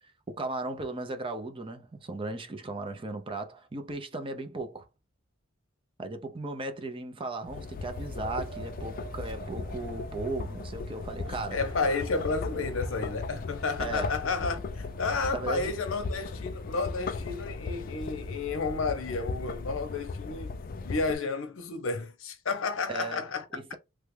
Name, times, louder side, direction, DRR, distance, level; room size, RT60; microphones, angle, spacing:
voice 1, 0.3-4.9 6.0-11.6 13.8-14.2 15.3-15.7 22.9-23.2 23.5-23.8, right 2 dB, 25° right, 0.5 m, -36 dB
sound 1, 7.4-21.1, left 3 dB, 45° left, 0.4 m, -37 dB
Wind, 7.8-16.2, right 4 dB, 70° right, 1.1 m, -48 dB
voice 2, 11.2-20.5 20.8-23.6, left 4 dB, 80° left, 0.7 m, -32 dB
3.2 x 2.3 x 3.2 m
head